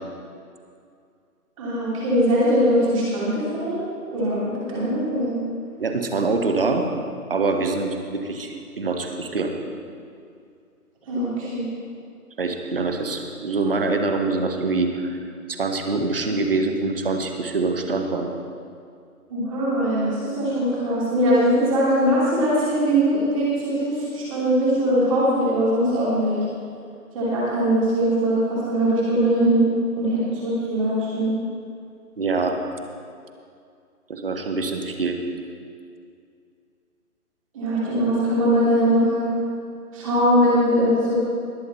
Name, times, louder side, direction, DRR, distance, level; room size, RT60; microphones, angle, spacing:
voice 1, 1.6-3.8 4.1-5.4 11.1-11.6 19.3-26.4 27.1-29.7 30.0-31.4 37.5-39.3 39.9-41.2, equal, 20° right, -8 dB, 2.8 m, -21 dB
voice 2, 5.8-6.8 7.3-9.5 12.4-15.2 15.5-18.3 32.2-32.5 34.1-35.2, right 3 dB, 35° right, 4 dB, 1.1 m, -24 dB
20.5 x 7.2 x 4.2 m, 2.4 s
figure-of-eight pair, 160°, 46 cm